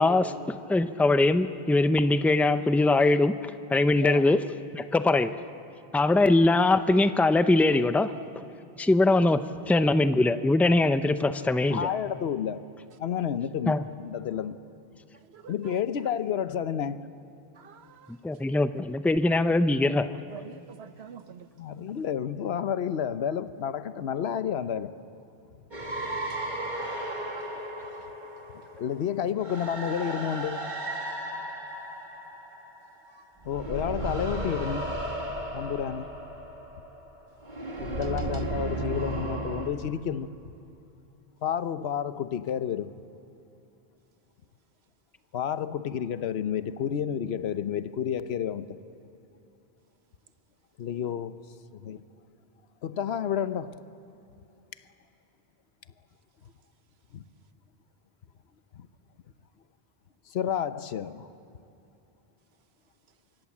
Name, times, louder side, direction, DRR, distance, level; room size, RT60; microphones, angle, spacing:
voice 1, 0.0-4.4 4.7-5.3 5.9-8.4 8.8-9.4 9.7-11.9 13.7-13.8 18.1-20.1, left 2 dB, ahead, 0.4 m, -22 dB
voice 2, 11.7-12.6 13.0-14.6 15.5-17.1 21.6-24.9 28.8-30.7 33.5-34.9 35.5-36.1 37.8-40.3 41.4-42.9 45.3-48.8 50.8-51.4 51.8-52.0 52.8-53.7 57.1-57.2 58.7-58.9 60.3-61.3, left 8 dB, 80° left, 1.0 m, -30 dB
voice 3, 15.2-15.8 17.5-18.2 20.3-21.5 26.3-26.6 26.9-27.0 27.3-27.5 33.1-33.2 38.0-38.4, right 7 dB, 80° right, 1.2 m, -48 dB
sound 1, 25.7-33.1 33.4-39.7, right 1 dB, 45° right, 2.5 m, -35 dB
25.5 x 24.5 x 7.3 m
omnidirectional pair, 1.1 m